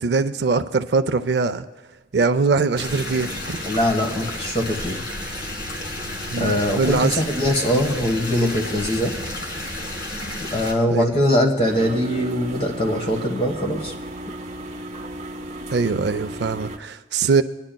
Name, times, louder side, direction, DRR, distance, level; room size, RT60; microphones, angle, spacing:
voice 1, 0.0-1.7 2.1-3.6 6.3-7.1 10.9-11.1 15.7-17.4, right 4 dB, 65° right, 10 dB, 0.4 m, -22 dB
sound 1, 2.8-10.7, left 1 dB, 60° left, 1.8 m, -31 dB
voice 2, 3.6-5.0 6.4-9.1 10.5-13.9, equal, 30° left, 2 dB, 1.4 m, -22 dB
sound 2, 11.6-16.8, right 1 dB, 35° right, 0.9 m, -34 dB
21.5 x 10.5 x 2.2 m, 1.1 s
head